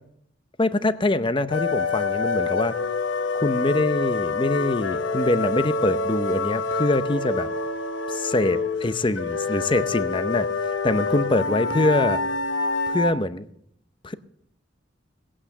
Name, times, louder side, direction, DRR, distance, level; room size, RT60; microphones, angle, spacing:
voice 1, 0.6-2.8 3.3-7.5 8.1-12.2 12.9-13.5 14.0-14.1, left 2 dB, 25° left, 12 dB, 0.7 m, -24 dB
sound 1, 1.5-13.1, left 3 dB, 70° left, 1.0 m, -26 dB
18.5 x 8.7 x 6.6 m, 0.69 s
head